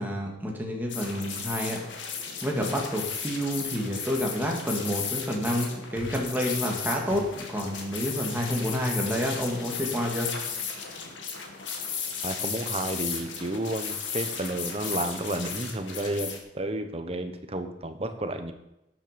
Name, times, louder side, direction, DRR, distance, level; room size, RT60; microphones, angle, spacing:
voice 1, 0.0-1.8 2.4-10.4, equal, 10° right, -1 dB, 2.3 m, -29 dB
sound 1, 0.9-16.4, left 6 dB, 85° left, 2.0 m, -35 dB
voice 2, 12.2-18.5, right 1 dB, 30° right, 8 dB, 1.1 m, -31 dB
12.0 x 9.6 x 5.3 m, 0.88 s
head